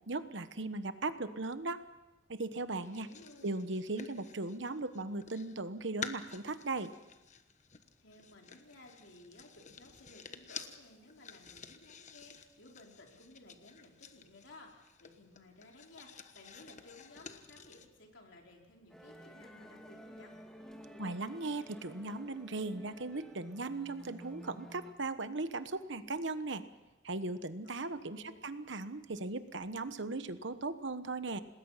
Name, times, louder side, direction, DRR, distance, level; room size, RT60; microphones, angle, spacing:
voice 1, 0.1-1.8 2.3-3.1 3.4-6.9 21.0-26.6 27.0-31.4, right 3 dB, 65° right, 11 dB, 1.2 m, -38 dB
voice 2, 2.8-3.5 8.0-20.3 27.6-28.5, left 2 dB, 70° left, 0 dB, 4.2 m, -57 dB
sound 1, 2.8-5.6 6.0-17.9, left 6 dB, 40° left, 1.2 m, -50 dB
sound 2, 18.9-24.9, equal, 5° left, 2.2 m, -52 dB
27.0 x 20.0 x 5.7 m, 0.98 s
head